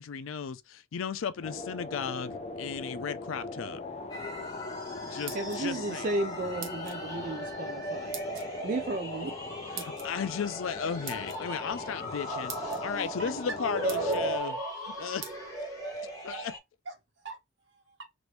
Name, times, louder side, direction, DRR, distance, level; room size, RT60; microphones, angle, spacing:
voice 1, 0.0-3.8 5.1-6.1 9.7-14.6 14.8-15.3 16.2-16.4, left 6 dB, 90° left, 0.4 m, -35 dB
sound 1, 1.4-14.4, left 3 dB, 35° left, 0.5 m, -40 dB
sound 2, 4.1-16.6, right 1 dB, 15° left, 1.0 m, -38 dB
sound 3, 5.0-5.9 6.6-7.0 8.1-8.5 9.8-10.1 11.0-11.4 12.1-12.2 12.5-12.8 13.4-13.5 13.9-14.2 15.2-15.4, right 8 dB, 85° right, 0.8 m, -42 dB
voice 2, 5.3-9.4 9.8-9.9, right 2 dB, 45° right, 0.4 m, -34 dB
voice 3, 13.2-13.9 15.7-16.5 16.8-18.0, right 3 dB, 70° right, 1.5 m, -45 dB
3.0 x 2.6 x 3.2 m
head